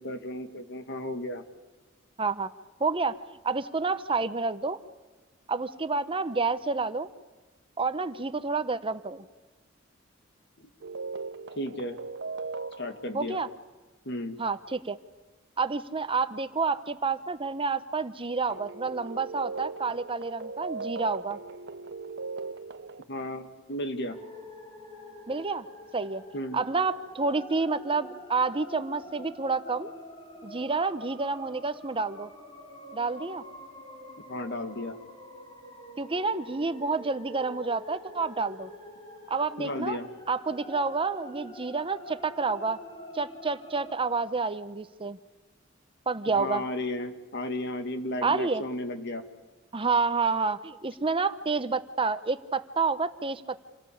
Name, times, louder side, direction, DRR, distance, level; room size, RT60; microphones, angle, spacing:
voice 1, 0.0-1.4 10.6-10.7 11.6-12.0 12.8-13.4 14.1-14.4 23.1-24.2 26.3-26.6 34.3-35.0 39.6-40.1 46.3-49.2, left 1 dB, 60° left, 8 dB, 2.0 m, -34 dB
voice 2, 2.2-2.5 2.8-3.2 3.4-4.8 5.5-7.1 7.8-9.2 13.1-13.5 14.4-15.0 15.6-21.4 25.3-25.6 25.9-26.2 26.5-29.9 30.4-32.3 32.9-33.4 36.0-38.7 39.3-40.0 40.3-42.8 43.1-45.2 46.1-46.6 48.2-48.6 49.7-53.6, right 4 dB, 25° right, 12 dB, 0.8 m, -29 dB
sound 1, 10.8-13.2 18.5-23.0, right 4 dB, 60° right, 0.8 m, -38 dB
sound 2, 24.1-43.9, equal, 25° left, 4.9 m, -47 dB
27.5 x 18.0 x 8.6 m, 1.2 s
head